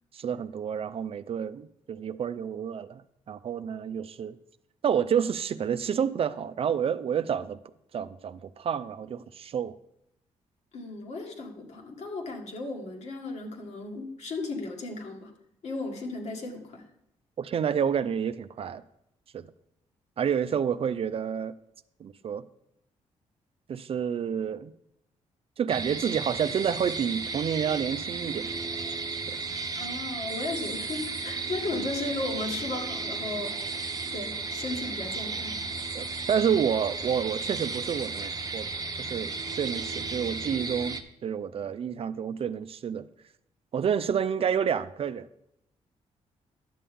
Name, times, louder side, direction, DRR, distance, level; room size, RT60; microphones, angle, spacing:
voice 1, 0.1-3.0 3.3-4.4 4.8-7.6 7.9-9.8 17.4-18.8 19.3-19.4 20.2-21.5 22.0-22.4 23.7-24.7 25.6-28.5 29.3-29.4 31.7-31.9 35.9-38.7 39.0-43.1 43.7-45.3, right 8 dB, 50° right, 0.4 m, -29 dB
voice 2, 10.7-15.3 15.6-16.8 29.7-33.6 34.1-35.7, left 2 dB, 65° left, 1.8 m, -35 dB
sound 1, 25.7-41.0, right 4 dB, 30° right, 0.8 m, -34 dB
11.0 x 6.9 x 3.7 m
cardioid pair, 85°, 13 cm